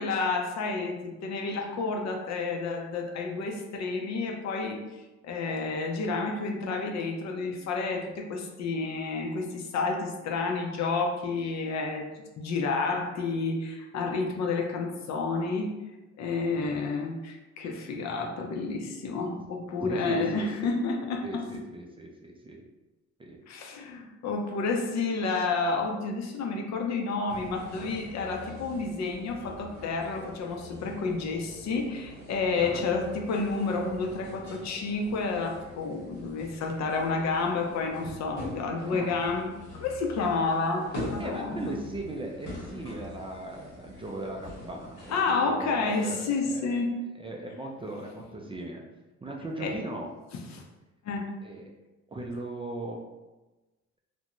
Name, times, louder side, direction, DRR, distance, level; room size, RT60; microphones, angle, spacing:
voice 1, 0.0-4.8 5.2-15.7 16.2-21.4 23.5-41.8 45.1-46.9 49.6-49.7 50.5-50.6 51.0-51.3, left 4 dB, 65° left, 2 dB, 0.5 m, -30 dB
voice 2, 19.8-20.7 21.2-22.6 23.2-23.4 32.6-32.9 38.9-39.2 41.2-46.8 47.2-48.8 49.2-50.1 51.4-51.7 52.1-53.1, right 2 dB, 20° right, 0 dB, 0.3 m, -38 dB
sound 1, 27.3-45.2, left 1 dB, 85° left, 1.1 m, -43 dB
2.5 x 2.1 x 2.9 m, 1.1 s
cardioid pair, 90°, 30 cm